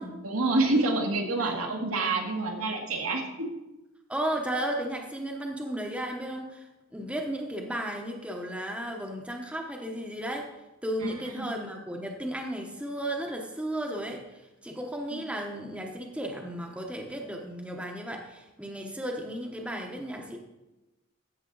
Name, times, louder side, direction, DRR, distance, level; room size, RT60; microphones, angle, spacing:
voice 1, 0.2-3.5 11.0-11.5 15.1-15.2, right 2 dB, 80° right, 2 dB, 1.7 m, -28 dB
voice 2, 4.1-6.7 6.9-10.5 10.8-20.4, right 1 dB, 5° right, 1 dB, 0.9 m, -34 dB
14.0 x 7.3 x 3.9 m, 1.0 s
head